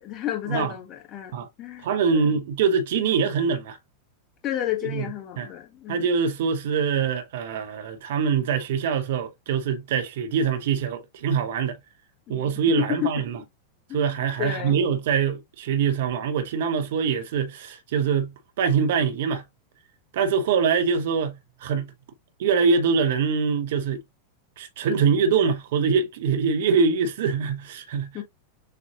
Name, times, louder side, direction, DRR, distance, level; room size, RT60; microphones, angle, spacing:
voice 1, 0.0-2.4 4.4-6.0 12.3-12.4 13.0-13.1 13.9-14.1 14.4-14.8 28.1-28.2, left 12 dB, 35° left, 1.3 m, -32 dB
voice 2, 1.8-3.8 4.8-5.1 5.4-5.5 5.9-11.8 12.3-13.4 13.9-19.4 20.1-21.9 22.4-24.0 24.6-28.1, right 6 dB, 55° right, 0.7 m, -24 dB
6.5 x 2.4 x 2.9 m
figure-of-eight pair, 90°, 0 cm